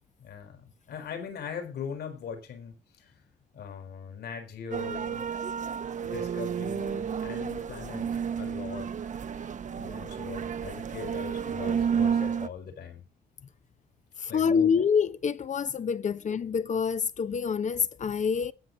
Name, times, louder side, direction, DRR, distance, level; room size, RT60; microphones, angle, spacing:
voice 1, 0.2-3.1 3.5-5.2 6.0-8.9 9.8-13.0 14.3-14.8, left 7 dB, 70° left, 4.6 m, -40 dB
sound 1, 4.7-12.5, right 7 dB, 45° right, 1.1 m, -31 dB
voice 2, 14.2-18.5, left 6 dB, 45° left, 0.9 m, -26 dB
19.5 x 6.9 x 4.1 m
cardioid pair, 90°, 17 cm